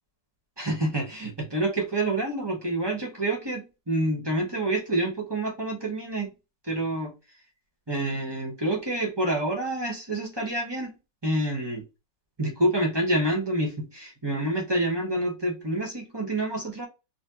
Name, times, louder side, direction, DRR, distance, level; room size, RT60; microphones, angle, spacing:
voice 1, 0.6-6.3 6.6-7.1 7.9-10.9 11.2-11.8 12.4-16.8, right 1 dB, 20° right, 0.7 m, -27 dB
4.1 x 2.7 x 2.8 m
omnidirectional pair, 1.9 m